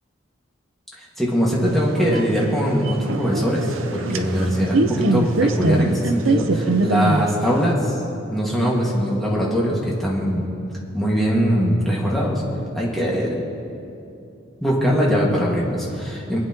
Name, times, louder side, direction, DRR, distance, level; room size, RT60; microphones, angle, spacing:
voice 1, 1.0-7.9 8.3-10.5 10.9-12.4 12.7-13.4 14.6-16.4, equal, ahead, -5 dB, 1.8 m, -21 dB
sound 1, 1.7-7.7, right 2 dB, 85° right, 0.7 m, -23 dB
26.5 x 8.9 x 3.0 m, 2.7 s
head